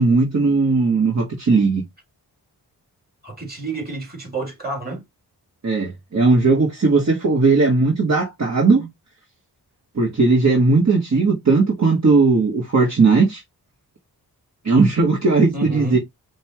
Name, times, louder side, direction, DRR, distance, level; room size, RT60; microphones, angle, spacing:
voice 1, 0.0-1.8 5.6-8.8 9.9-13.4 14.6-16.0, right 3 dB, 45° right, 1.2 m, -17 dB
voice 2, 3.2-5.0 8.7-8.9 15.5-16.0, right 3 dB, 25° right, 2.5 m, -30 dB
5.3 x 2.2 x 2.9 m
cardioid pair, 70°, 40 cm